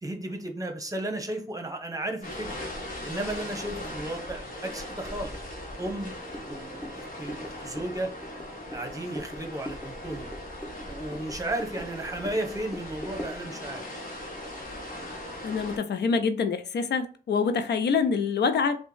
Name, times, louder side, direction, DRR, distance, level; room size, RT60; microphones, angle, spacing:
voice 1, 0.0-2.6 3.0-5.3 5.8-8.1 8.7-10.3 10.8-13.8, right 1 dB, 20° right, 0.9 m, -34 dB
sound 1, 2.2-15.8, left 1 dB, 50° left, 1.2 m, -39 dB
sound 2, 5.9-13.4, equal, 10° left, 0.9 m, -43 dB
voice 2, 15.4-18.8, left 5 dB, 85° left, 0.4 m, -26 dB
3.4 x 2.2 x 3.1 m
cardioid pair, 50°, 17 cm